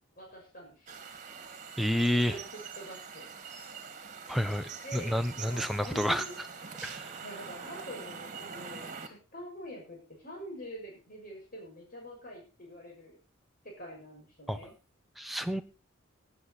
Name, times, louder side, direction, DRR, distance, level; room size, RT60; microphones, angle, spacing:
voice 1, 0.2-0.9 2.0-3.3 4.8-6.3 7.2-13.2 13.6-14.7, equal, 45° left, -1 dB, 6.6 m, -45 dB
sound 1, 0.9-9.1, right 6 dB, 40° right, 2.3 m, -44 dB
voice 2, 1.8-2.4 4.3-6.2 6.8-7.1 14.5-14.6 15.2-15.6, equal, ahead, 8 dB, 0.9 m, -29 dB
18.0 x 9.9 x 4.2 m, 0.34 s
head